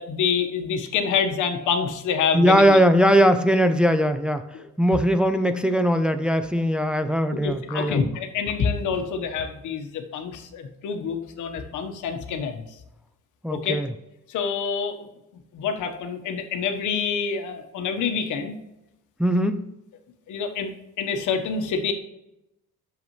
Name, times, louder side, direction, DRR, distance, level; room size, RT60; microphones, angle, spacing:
voice 1, 0.0-2.8 4.5-4.6 7.4-12.6 13.5-13.8 14.3-15.1 15.5-18.6 20.3-20.7 21.0-21.9, left 6 dB, 80° left, 5 dB, 1.2 m, -27 dB
voice 2, 2.3-4.4 4.8-8.0 13.4-13.9 19.2-19.7, equal, 5° right, 8 dB, 0.5 m, -20 dB
8.1 x 7.0 x 3.1 m, 0.90 s
cardioid pair, 90°, 30 cm